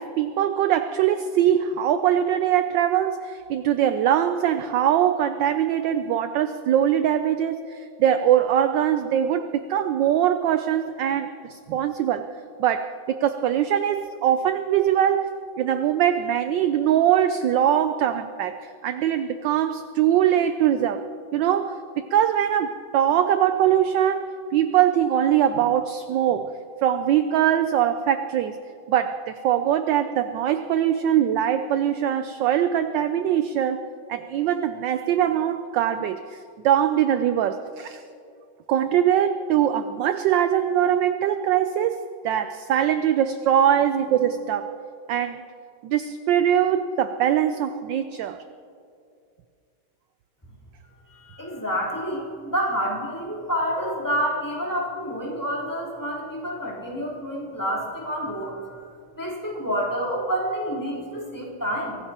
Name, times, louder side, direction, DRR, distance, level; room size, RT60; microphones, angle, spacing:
voice 1, 0.0-12.3 12.6-21.0 21.3-26.6 26.8-28.6 28.9-38.0 38.7-44.8 45.1-45.4 45.8-48.4, right 10 dB, 75° right, 10 dB, 1.1 m, -22 dB
voice 2, 51.1-58.9 59.2-62.0, equal, 10° left, -6 dB, 3.7 m, -28 dB
24.0 x 17.0 x 2.9 m, 2.3 s
omnidirectional pair, 2.3 m